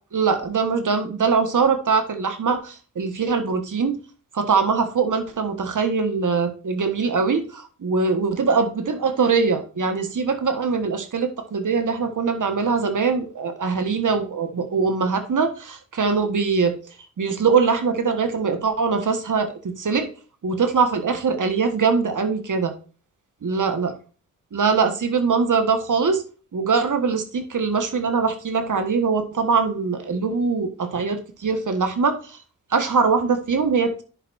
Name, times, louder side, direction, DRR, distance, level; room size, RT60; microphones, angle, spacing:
voice 1, 0.1-4.0 4.3-16.7 17.2-20.1 20.4-22.7 23.4-23.9 24.5-26.2 26.5-32.4 32.7-34.0, right 5 dB, 70° right, 7 dB, 1.4 m, -22 dB
10.5 x 6.1 x 2.6 m, 0.37 s
cardioid pair, 60°, 32 cm